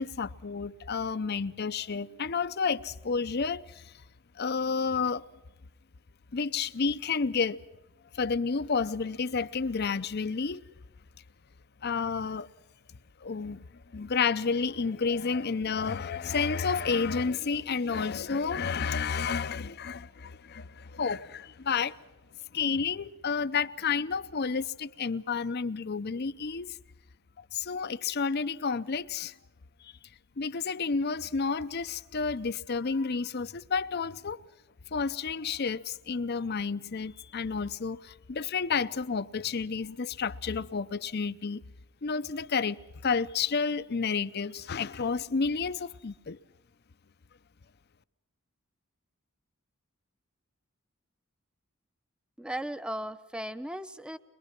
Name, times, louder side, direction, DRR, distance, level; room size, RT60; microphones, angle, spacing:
voice 1, 0.0-3.9 4.4-5.3 6.3-7.6 8.1-10.6 11.8-12.5 13.2-13.7 13.9-22.0 22.5-26.8 27.5-29.3 29.8-29.9 30.4-34.4 34.9-41.6 42.0-46.4, left 5 dB, 50° left, 0.6 m, -30 dB
voice 2, 52.4-54.2, right 1 dB, 5° right, 0.7 m, -36 dB
23.0 x 22.5 x 6.0 m
head